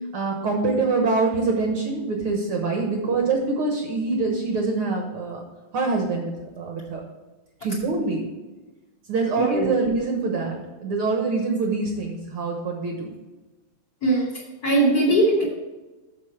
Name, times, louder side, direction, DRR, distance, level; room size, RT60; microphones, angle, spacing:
voice 1, 0.1-5.4 5.7-7.0 7.6-8.3 9.1-13.1, right 3 dB, 60° right, 2 dB, 1.6 m, -25 dB
voice 2, 9.4-9.8 14.0-15.4, right 2 dB, 30° left, -3 dB, 2.5 m, -21 dB
8.4 x 7.0 x 4.5 m, 1.2 s
omnidirectional pair, 3.7 m